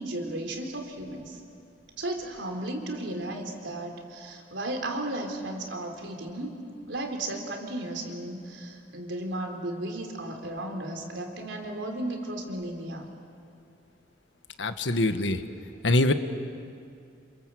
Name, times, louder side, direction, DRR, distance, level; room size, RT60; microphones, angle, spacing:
voice 1, 0.0-1.4 2.0-6.5 6.9-13.1, right 1 dB, 90° right, 3 dB, 3.8 m, -34 dB
voice 2, 14.6-15.4 15.8-16.1, left 2 dB, 85° left, 8 dB, 1.5 m, -23 dB
28.5 x 27.0 x 7.7 m, 2.4 s
head